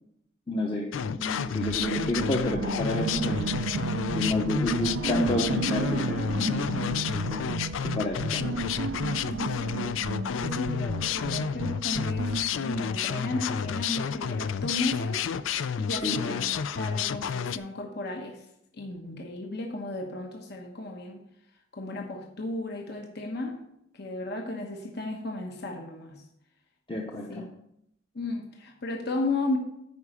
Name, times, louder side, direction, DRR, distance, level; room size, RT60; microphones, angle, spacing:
voice 1, 0.5-3.5 4.1-7.6 7.8-8.6 16.0-16.5 26.9-27.5, left 1 dB, 25° left, 0 dB, 0.8 m, -30 dB
sound 1, 0.9-17.6, left 7 dB, 75° left, 0.4 m, -31 dB
sound 2, 1.6-12.5, right 4 dB, 70° right, 0.5 m, -33 dB
voice 2, 9.3-10.0 10.3-18.4 18.7-21.2 21.7-23.6 23.9-26.2 27.3-27.4 28.1-29.6, left 2 dB, 55° left, 2 dB, 1.1 m, -34 dB
9.5 x 4.9 x 6.8 m, 0.78 s
head